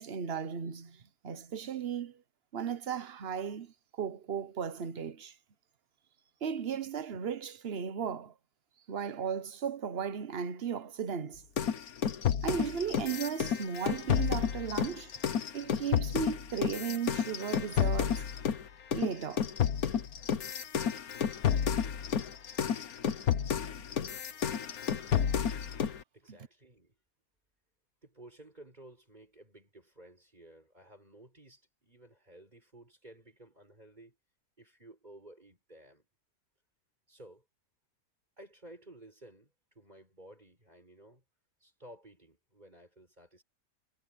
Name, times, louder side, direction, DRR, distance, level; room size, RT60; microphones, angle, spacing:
voice 1, 0.0-2.2 2.5-5.3 6.4-8.3 8.9-11.4 12.4-15.1 15.5-18.2 18.9-19.5 26.3-26.4, right 7 dB, 45° right, 1.2 m, -36 dB
sound 1, 11.6-18.6 18.9-26.0, left 8 dB, 90° left, 1.6 m, -31 dB
voice 2, 26.1-26.9 28.0-34.2 34.6-36.1 37.1-37.4 38.4-41.2 41.6-43.4, right 1 dB, 30° right, 6.5 m, -55 dB
omnidirectional pair, 1.5 m